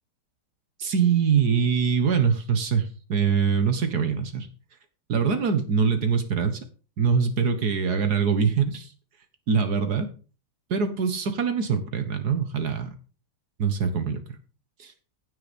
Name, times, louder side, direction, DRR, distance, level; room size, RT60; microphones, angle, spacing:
voice 1, 0.8-4.5 5.1-6.6 7.0-8.9 9.5-10.1 10.7-12.9 13.6-14.2 14.8-14.9, right 6 dB, 70° right, 8 dB, 1.9 m, -23 dB
16.0 x 5.8 x 5.2 m, 0.37 s
omnidirectional pair, 1.8 m